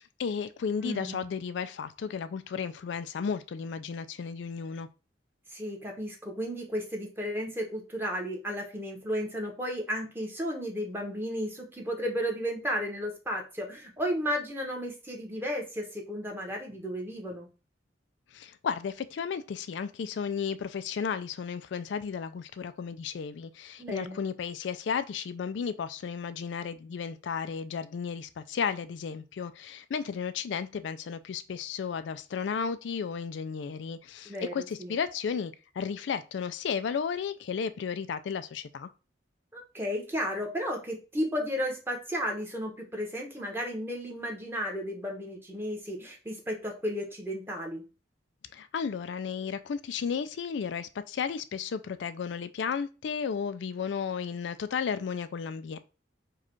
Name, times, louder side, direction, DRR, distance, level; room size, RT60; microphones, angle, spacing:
voice 1, 0.0-4.9 18.3-38.9 48.5-55.8, left 6 dB, 75° left, 0.4 m, -34 dB
voice 2, 0.8-1.2 5.5-17.5 23.8-24.2 34.3-35.0 39.5-47.8, equal, 15° right, 1.0 m, -33 dB
4.8 x 2.3 x 4.4 m
head